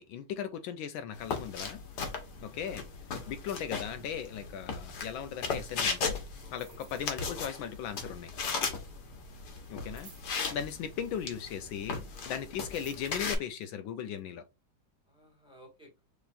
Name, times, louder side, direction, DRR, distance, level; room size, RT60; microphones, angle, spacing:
voice 1, 0.0-1.8 2.4-2.8 3.3-6.1 6.5-8.3 9.7-10.1 10.5-14.4, left 8 dB, 80° left, 1.3 m, -37 dB
sound 1, 1.1-13.3, left 4 dB, 55° left, 1.5 m, -37 dB
sound 2, 6.3-7.2 7.5-7.7 8.0-8.1 9.6-11.1 12.4-13.7 14.2-14.3, right 6 dB, 70° right, 2.2 m, -57 dB
voice 2, 6.4-6.8 8.6-8.8 12.1-12.2 15.1-16.0, equal, 5° right, 1.6 m, -57 dB
6.7 x 3.1 x 2.4 m
omnidirectional pair, 2.3 m